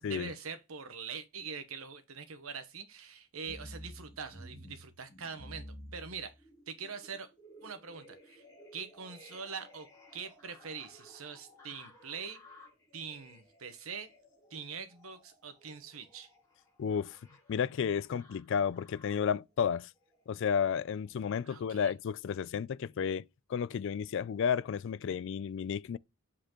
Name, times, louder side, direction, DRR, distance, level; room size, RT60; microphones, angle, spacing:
voice 1, 0.0-5.7 5.9-6.3 6.7-7.3 7.6-8.4 8.7-9.9 10.1-12.4 12.9-14.1 14.5-16.3 21.4-21.9, right 6 dB, 75° right, 1.1 m, -43 dB
sound 1, 3.5-19.4 20.0-20.7 21.2-21.3, equal, 15° left, 3.7 m, -54 dB
voice 2, 16.8-17.2 17.5-19.9 20.3-23.2 23.5-26.0, left 7 dB, 60° left, 0.3 m, -32 dB
7.7 x 4.2 x 3.0 m
head